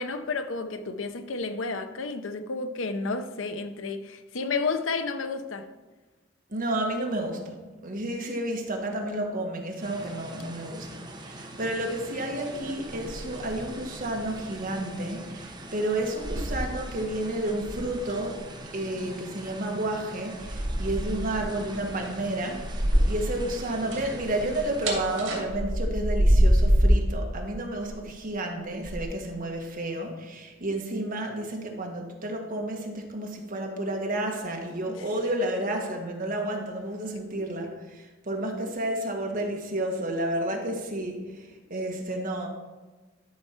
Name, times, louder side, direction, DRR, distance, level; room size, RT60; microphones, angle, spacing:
voice 1, 0.0-5.7 34.8-35.0, left 4 dB, 75° left, 0.7 m, -31 dB
voice 2, 6.5-7.6 7.8-18.4 18.7-42.5, right 1 dB, 45° right, 1.5 m, -31 dB
sound 1, 9.8-25.2, right 1 dB, 20° right, 1.0 m, -43 dB
sound 2, 12.9-13.9 14.2-14.4 15.3-15.4 16.0-17.1 17.4-18.3 20.4-23.4 23.6-27.1 27.8-28.2 28.8-29.0, equal, 80° right, 2.5 m, -26 dB
12.5 x 4.5 x 5.8 m
head